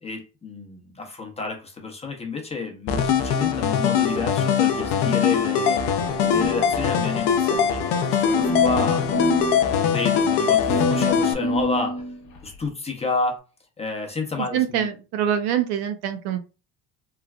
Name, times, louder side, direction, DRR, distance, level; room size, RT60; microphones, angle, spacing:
voice 1, 0.0-5.8 6.3-9.1 9.6-12.0 12.4-13.4 13.8-14.9, left 4 dB, 15° left, 0.7 m, -30 dB
sound 1, 2.9-11.3, left 7 dB, 80° left, 0.5 m, -21 dB
sound 2, 5.9-7.2 7.5-7.6 8.4-9.7 10.7-12.7, equal, 50° left, 1.0 m, -28 dB
voice 2, 14.5-16.5, right 9 dB, 75° right, 0.6 m, -25 dB
3.2 x 2.3 x 2.3 m
cardioid pair, 130°, 40 cm